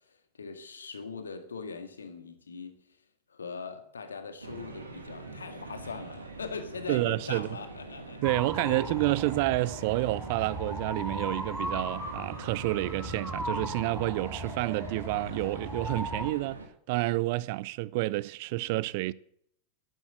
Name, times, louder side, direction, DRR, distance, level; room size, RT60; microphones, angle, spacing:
voice 1, 0.1-3.0 3.3-9.2 9.9-10.0, left 5 dB, 80° left, 1.8 m, -41 dB
sound 1, 4.4-16.7, right 3 dB, 85° right, 2.4 m, -44 dB
voice 2, 6.9-7.5 8.2-16.6 16.9-19.1, right 19 dB, 55° right, 0.5 m, -29 dB
sound 2, 8.2-16.3, right 1 dB, ahead, 4.7 m, -37 dB
11.0 x 11.0 x 7.8 m
figure-of-eight pair, 90°, 0 cm